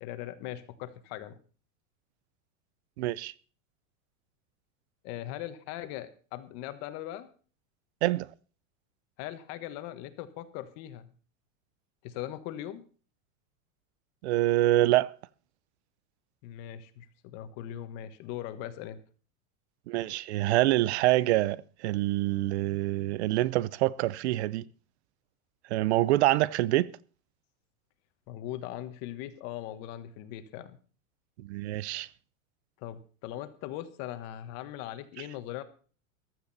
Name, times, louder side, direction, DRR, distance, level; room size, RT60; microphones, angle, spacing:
voice 1, 0.0-1.3 5.0-7.3 9.2-11.1 12.0-12.8 16.4-19.0 28.3-30.8 32.8-35.6, left 12 dB, 35° left, 1.4 m, -40 dB
voice 2, 3.0-3.3 8.0-8.3 14.2-15.1 19.9-24.7 25.7-26.9 31.4-32.1, right 16 dB, 50° right, 0.7 m, -26 dB
15.0 x 12.5 x 4.2 m
supercardioid pair, 175°, 42 cm